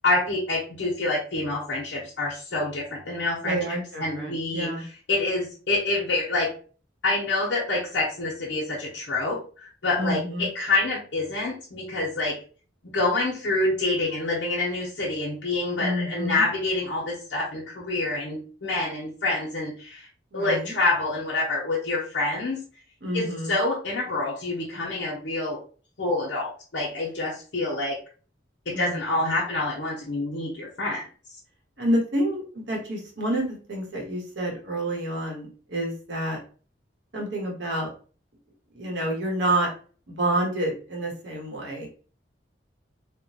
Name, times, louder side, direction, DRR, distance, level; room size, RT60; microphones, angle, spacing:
voice 1, 0.0-6.5 7.0-12.4 12.9-20.1 20.3-22.6 23.1-25.6 26.0-28.0 28.7-31.0, left 2 dB, 85° left, -5 dB, 0.9 m, -27 dB
voice 2, 3.4-4.8 10.0-10.5 15.8-16.5 20.3-20.7 23.0-23.5 28.7-29.4 31.8-36.4 37.1-37.9 38.7-39.7 40.2-41.9, right 1 dB, 70° right, 0 dB, 1.2 m, -28 dB
3.6 x 2.2 x 2.8 m, 0.39 s
head